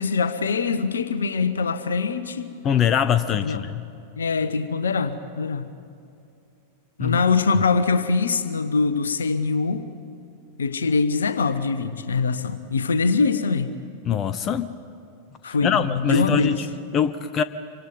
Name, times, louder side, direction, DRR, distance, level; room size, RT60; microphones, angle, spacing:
voice 1, 0.0-2.5 3.4-3.6 4.2-5.7 7.0-9.9 10.6-13.7 15.4-16.6, left 4 dB, 70° left, 12 dB, 1.1 m, -23 dB
voice 2, 2.6-3.9 7.0-7.2 14.0-14.7 15.5-17.4, left 8 dB, 30° left, 12 dB, 0.7 m, -23 dB
26.5 x 24.5 x 5.4 m, 2.5 s
figure-of-eight pair, 90°, 0 cm